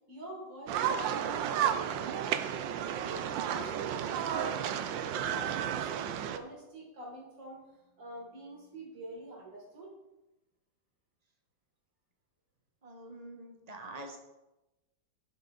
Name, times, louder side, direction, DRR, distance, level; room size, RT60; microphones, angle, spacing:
voice 1, 0.1-1.5 2.1-2.3 2.6-7.7 8.0-9.9, right 1 dB, 65° right, -4 dB, 3.1 m, -46 dB
sound 1, 0.7-6.4, right 9 dB, 90° right, 1.4 m, -32 dB
voice 2, 12.8-14.2, right 2 dB, 25° right, 4 dB, 0.9 m, -45 dB
11.5 x 6.0 x 3.9 m, 0.99 s
omnidirectional pair, 2.0 m